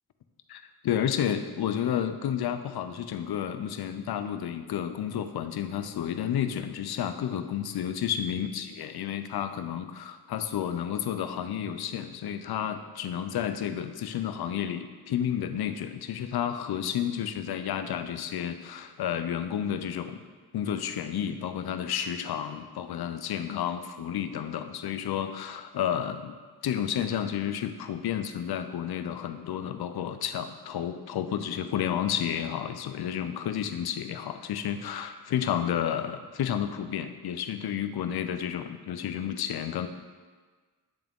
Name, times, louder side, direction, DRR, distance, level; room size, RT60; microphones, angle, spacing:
voice 1, 0.5-20.2 20.5-26.4 26.6-39.9, left 9 dB, 70° left, 10 dB, 0.6 m, -31 dB
9.0 x 3.5 x 3.5 m, 1.4 s
cardioid pair, 50°, 39 cm